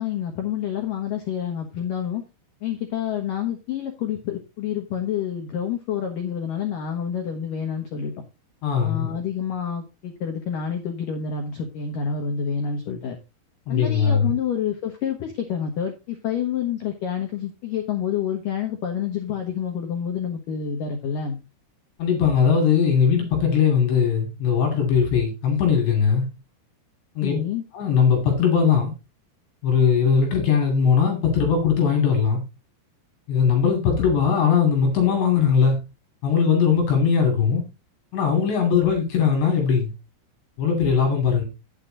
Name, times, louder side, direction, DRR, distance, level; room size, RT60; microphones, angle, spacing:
voice 1, 0.0-2.2 2.6-8.1 8.8-13.2 13.7-21.4 27.2-27.6, left 8 dB, 80° left, 1.9 m, -28 dB
voice 2, 8.6-9.1 13.7-14.3 22.0-26.3 27.2-27.4 27.7-28.9 29.6-32.4 33.3-35.8 36.2-37.6 38.1-39.9 40.6-41.4, left 6 dB, 60° left, 4.5 m, -20 dB
10.0 x 8.3 x 3.9 m
omnidirectional pair, 6.0 m